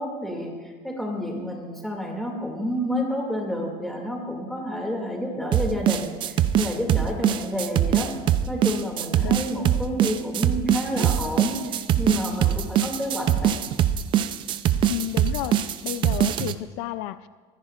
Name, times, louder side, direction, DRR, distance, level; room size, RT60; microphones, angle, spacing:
voice 1, 0.0-8.1 8.5-13.6, equal, ahead, -1 dB, 2.3 m, -30 dB
sound 1, 5.5-16.5, right 10 dB, 35° right, 0.5 m, -22 dB
voice 2, 14.9-17.3, left 15 dB, 85° left, 13 dB, 0.5 m, -32 dB
23.5 x 15.0 x 2.5 m, 1.5 s
cardioid pair, 165°, 14 cm